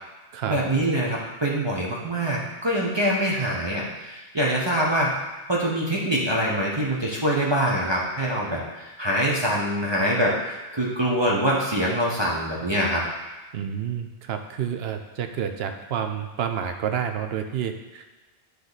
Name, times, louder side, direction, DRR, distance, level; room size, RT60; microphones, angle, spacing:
voice 1, 0.5-5.1 5.5-13.0, right 1 dB, 25° right, -4 dB, 0.8 m, -24 dB
voice 2, 13.5-18.1, right 8 dB, 70° right, 6 dB, 0.8 m, -29 dB
9.4 x 3.3 x 4.0 m, 1.2 s
omnidirectional pair, 1.1 m